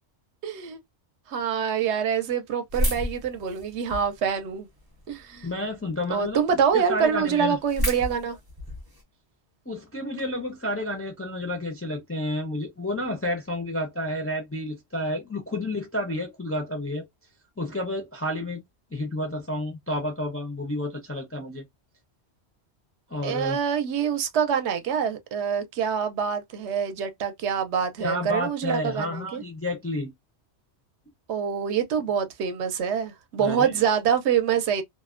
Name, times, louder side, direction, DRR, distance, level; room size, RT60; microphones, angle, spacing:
voice 1, 0.4-0.8 1.3-4.7 5.1-5.5 6.1-8.4 23.2-29.4 31.3-34.8, right 7 dB, 80° right, 0.9 m, -25 dB
sound 1, 2.7-4.2 4.8-5.4 5.9-6.0 6.2-6.3 6.7-6.8 7.0-9.0, left 1 dB, 25° right, 0.5 m, -30 dB
voice 2, 5.4-6.4 6.7-7.6 9.7-17.1 17.6-18.6 18.9-21.6 23.1-23.6 28.0-30.1 33.4-33.8, left 1 dB, 25° left, 0.3 m, -30 dB
2.5 x 2.1 x 2.3 m
omnidirectional pair, 1.2 m